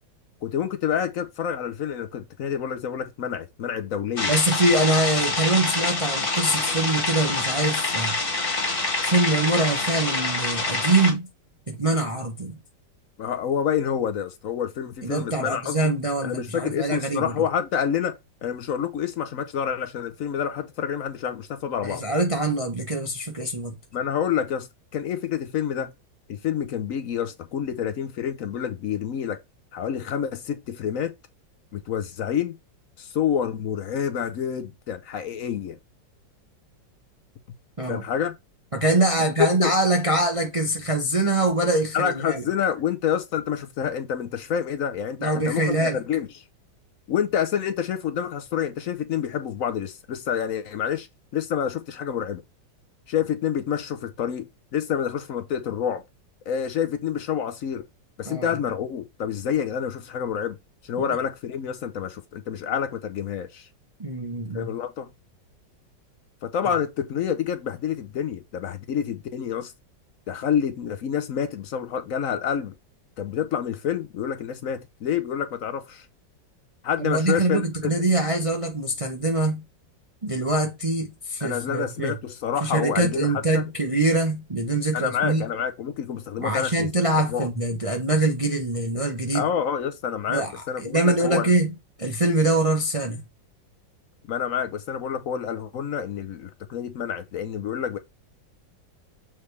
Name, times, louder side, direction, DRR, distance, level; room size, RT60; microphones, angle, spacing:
voice 1, 0.4-4.3 13.2-15.8 16.2-22.0 23.9-24.7 24.9-25.9 26.3-29.4 29.7-31.1 31.7-32.5 33.0-35.8 37.8-38.3 39.4-39.7 41.9-46.4 47.1-51.1 51.3-52.4 53.1-54.5 54.7-56.0 56.5-57.8 58.2-60.6 60.8-63.7 64.5-65.1 66.4-69.7 70.3-72.7 73.2-76.1 76.8-78.0 81.4-83.7 84.9-86.9 87.3-87.5 89.3-91.5 94.3-98.0, left 8 dB, 65° left, 0.9 m, -28 dB
sound 1, 4.2-11.1, left 3 dB, 30° left, 1.6 m, -26 dB
voice 2, 4.3-8.2 9.0-11.3 11.7-12.6 15.0-17.3 21.8-23.7 37.8-38.0 38.7-42.4 45.2-46.0 58.3-58.5 61.0-61.1 64.0-64.7 77.0-79.6 80.2-82.1 82.6-85.4 86.4-89.5 90.3-90.5 90.8-91.7 92.0-93.2, right 2 dB, 30° right, 0.6 m, -24 dB
7.3 x 4.4 x 3.2 m
omnidirectional pair, 2.0 m